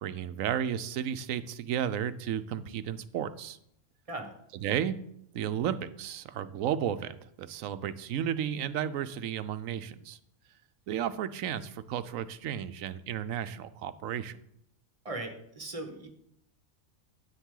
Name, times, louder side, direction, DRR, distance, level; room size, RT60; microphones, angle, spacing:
voice 1, 0.0-3.6 4.6-5.0 5.3-10.2 10.9-14.4, right 9 dB, 85° right, 13 dB, 1.0 m, -33 dB
voice 2, 15.0-16.1, right 2 dB, 25° right, 4 dB, 1.4 m, -38 dB
10.0 x 8.6 x 3.8 m, 0.73 s
omnidirectional pair, 1.4 m